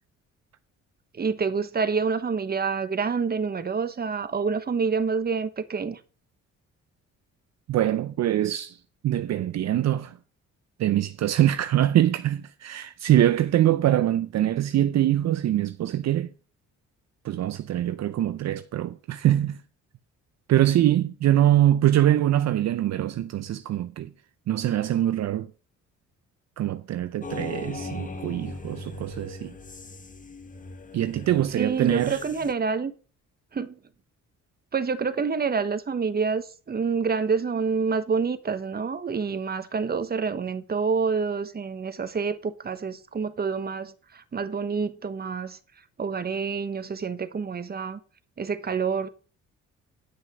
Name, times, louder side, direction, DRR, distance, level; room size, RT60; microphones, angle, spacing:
voice 1, 1.1-6.0 31.6-32.9 33.5-33.8 34.7-45.6 46.0-48.0 48.4-49.1, right 5 dB, 30° right, 1.1 m, -27 dB
voice 2, 7.7-8.8 9.0-10.2 10.8-16.3 17.2-19.6 20.5-24.1 24.5-25.5 26.6-29.5 30.9-32.2, right 12 dB, 60° right, 0.6 m, -23 dB
sound 1, 27.2-32.5, left 3 dB, 25° left, 1.2 m, -39 dB
9.9 x 6.3 x 6.0 m
cardioid pair, 90°, 30 cm